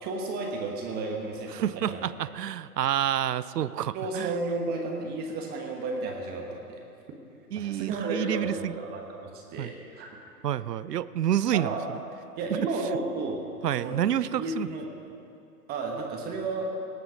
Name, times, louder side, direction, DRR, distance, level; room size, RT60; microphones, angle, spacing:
voice 1, 0.0-2.3 3.9-6.8 7.6-10.2 11.5-11.8 12.4-13.4 13.7-14.0 14.3-14.9 15.7-16.7, right 3 dB, 20° right, 1 dB, 1.2 m, -33 dB
voice 2, 1.5-4.4 7.5-8.8 9.6-9.7 10.4-11.8 13.6-14.7, right 10 dB, 80° right, 17 dB, 0.6 m, -28 dB
18.0 x 7.9 x 6.2 m, 2.6 s
hypercardioid pair, 130°, 47 cm